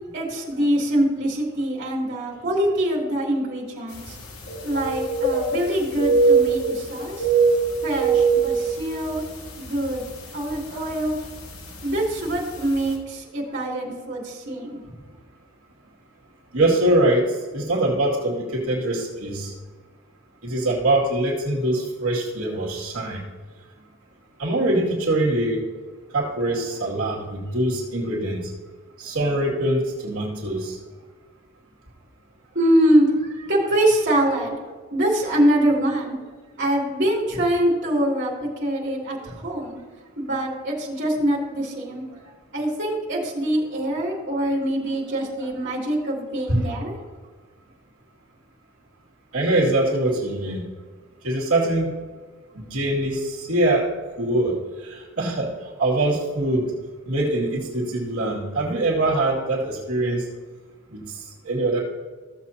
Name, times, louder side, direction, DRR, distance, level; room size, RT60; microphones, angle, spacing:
voice 1, 0.1-4.2 4.6-7.3 7.8-9.2 9.6-10.1 10.3-11.2 11.8-15.0 32.5-34.6 34.9-36.2 36.6-39.8 40.2-46.9, right 1 dB, 55° right, -4 dB, 2.9 m, -24 dB
sound 1, 4.0-4.1 4.4-5.7 5.9-6.9 7.1-9.3 9.7-9.9 10.5-10.8 11.8-11.9 12.3-12.4, right 4 dB, 90° left, 1.8 m, -21 dB
voice 2, 16.5-19.5 20.4-23.2 24.4-25.6 26.1-28.5 29.0-30.8 46.5-46.6 49.3-50.6 51.2-51.9 52.5-53.9 54.2-54.5 54.8-56.7 57.1-60.2 60.9-61.8, right 1 dB, 80° right, -3 dB, 2.5 m, -23 dB
15.5 x 7.4 x 2.8 m, 1.5 s
head